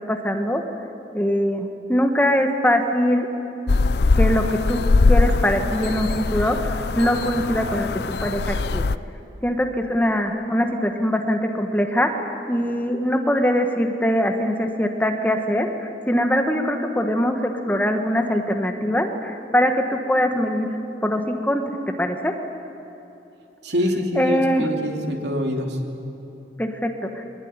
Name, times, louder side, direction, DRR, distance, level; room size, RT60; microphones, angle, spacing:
voice 1, 0.1-0.6 1.1-3.3 4.1-8.8 9.4-20.7 21.0-21.6 22.0-22.3 24.1-24.7 26.6-27.2, equal, 10° left, 4 dB, 1.4 m, -22 dB
sound 1, 3.7-9.0, left 3 dB, 70° left, 0.5 m, -21 dB
voice 2, 23.6-25.8, left 1 dB, 80° right, 3 dB, 2.8 m, -25 dB
22.5 x 20.5 x 9.7 m, 2.9 s
head